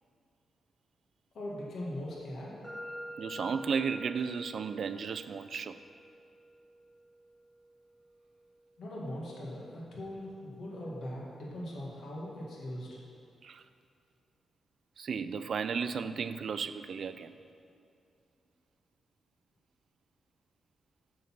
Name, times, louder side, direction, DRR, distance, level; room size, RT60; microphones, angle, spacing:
voice 1, 1.3-2.6 8.8-13.0, left 1 dB, 65° left, -4 dB, 1.8 m, -40 dB
sound 1, 2.6-10.5, equal, 15° left, 2.0 m, -49 dB
voice 2, 3.2-5.8 13.4-13.6 15.0-17.3, right 6 dB, 55° right, 12 dB, 0.3 m, -34 dB
6.7 x 6.5 x 5.7 m, 2.5 s
wide cardioid pair, 150°, 0 cm